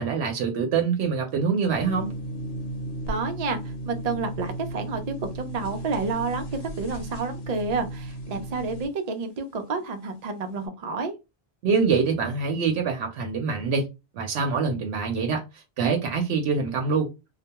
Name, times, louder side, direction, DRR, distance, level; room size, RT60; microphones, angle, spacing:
voice 1, 0.0-2.1 11.6-13.8 14.1-17.1, right 5 dB, 80° right, 2 dB, 0.9 m, -25 dB
sound 1, 1.7-8.9, right 1 dB, 75° left, 0.8 m, -35 dB
voice 2, 3.1-11.1, right 4 dB, 50° right, 6 dB, 0.5 m, -30 dB
2.2 x 2.2 x 2.8 m, 0.25 s
omnidirectional pair, 1.1 m